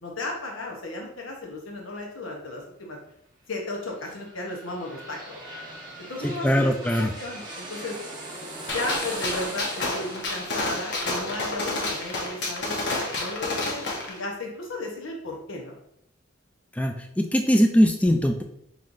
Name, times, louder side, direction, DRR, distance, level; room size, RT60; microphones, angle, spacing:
voice 1, 0.0-3.0 3.5-5.4 6.0-8.0 8.7-15.7, left 2 dB, 90° left, 0 dB, 1.0 m, -35 dB
sound 1, 3.6-13.2 13.7-13.8, right 1 dB, 20° right, 1.0 m, -41 dB
voice 2, 6.2-7.1 16.8-18.4, equal, 5° left, 4 dB, 0.3 m, -21 dB
Gunshot gunfire, 8.7-14.1, left 2 dB, 60° left, 0.9 m, -30 dB
5.4 x 3.1 x 2.6 m, 0.75 s
head